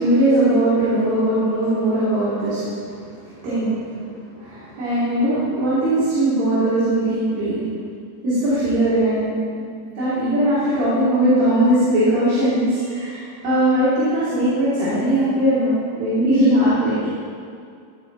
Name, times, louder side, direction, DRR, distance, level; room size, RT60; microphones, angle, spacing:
voice 1, 0.0-7.6 8.2-9.7 9.9-17.1, right 1 dB, 85° right, -13 dB, 4.7 m, -20 dB
15.5 x 5.6 x 4.0 m, 2.3 s
omnidirectional pair, 3.9 m